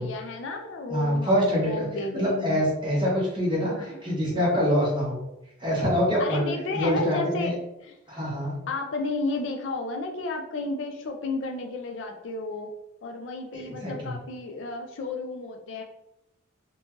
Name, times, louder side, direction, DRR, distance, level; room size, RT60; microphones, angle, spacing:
voice 1, 0.0-2.6 3.7-4.5 6.2-7.5 7.8-7.9 8.7-12.7 13.0-15.8, left 3 dB, 65° left, 3 dB, 0.4 m, -32 dB
voice 2, 0.9-1.9 2.1-5.2 5.6-6.4 6.7-7.5 8.1-8.6 13.5-14.2, equal, 25° right, -5 dB, 0.9 m, -25 dB
2.9 x 2.2 x 2.9 m, 0.88 s
head